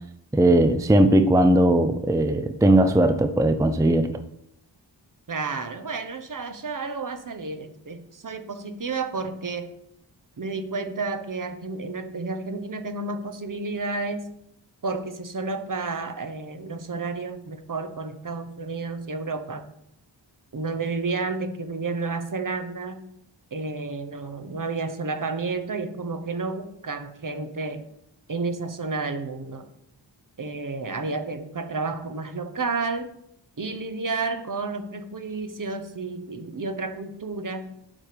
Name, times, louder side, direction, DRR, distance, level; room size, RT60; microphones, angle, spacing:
voice 1, 0.3-4.1, right 1 dB, 10° right, 9 dB, 0.5 m, -18 dB
voice 2, 5.3-9.7 10.4-14.3 14.8-19.6 20.5-23.1 23.5-27.9 28.3-29.7 30.4-33.1 33.6-37.7, right 3 dB, 45° right, 8 dB, 0.9 m, -31 dB
7.3 x 5.0 x 6.7 m, 0.77 s
wide cardioid pair, 100°, 44 cm